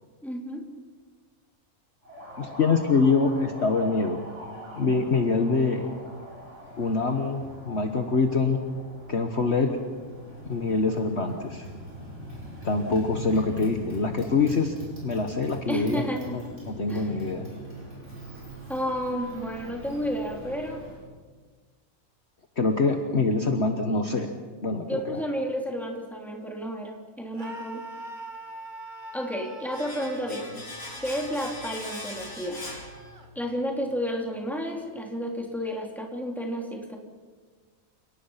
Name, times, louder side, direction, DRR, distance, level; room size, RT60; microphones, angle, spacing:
voice 1, 0.2-0.6 15.7-16.5 16.9-17.1 18.7-20.8 24.9-27.8 29.1-30.6 31.0-32.6 33.3-37.0, equal, ahead, 0 dB, 3.5 m, -31 dB
Motorcycle, 2.0-21.0, equal, 55° right, 8.2 m, -42 dB
voice 2, 2.4-4.2 4.7-5.9 6.8-8.6 9.1-9.7 10.5-11.7 12.6-14.8 15.0-16.1 16.3-17.5 22.6-24.3 24.6-25.2, left 4 dB, 50° left, 5 dB, 1.5 m, -25 dB
Screaming, 27.3-33.3, right 2 dB, 35° right, 2.1 m, -43 dB
Domestic sounds home sounds, 29.7-33.5 33.8-33.9, left 1 dB, 90° left, 6.8 m, -41 dB
29.0 x 18.5 x 5.8 m, 1.4 s
omnidirectional pair, 1.5 m